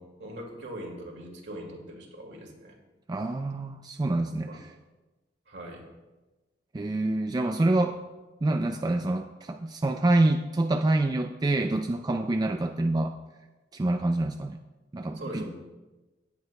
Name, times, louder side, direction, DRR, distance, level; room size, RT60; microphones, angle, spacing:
voice 1, 0.0-2.8 4.4-4.6 5.5-5.9 15.1-15.5, right 1 dB, 65° right, 0 dB, 2.1 m, -41 dB
voice 2, 3.1-4.7 6.7-8.0 8.4-13.2 13.7-14.6 14.9-15.5, right 2 dB, 20° right, 5 dB, 0.3 m, -26 dB
17.5 x 8.6 x 2.2 m, 1.1 s
head